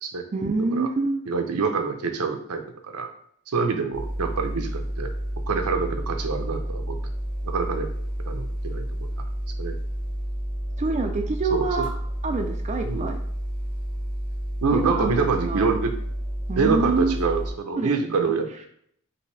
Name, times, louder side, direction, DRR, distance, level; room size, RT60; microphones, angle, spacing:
voice 1, 0.3-1.2 10.8-11.9 12.2-13.2 14.7-15.8 16.5-17.2 17.7-18.3, right 3 dB, 30° right, 3 dB, 0.4 m, -26 dB
voice 2, 1.3-2.6 2.9-3.1 3.5-5.1 5.5-7.0 7.4-7.9 8.3-9.1 9.6-9.7 11.5-11.9 12.9-13.1 14.6-15.9 16.6-18.7, right 4 dB, 80° right, 5 dB, 0.7 m, -26 dB
sound 1, 3.9-17.5, equal, 60° left, 1.5 m, -30 dB
5.6 x 2.6 x 3.2 m, 0.67 s
head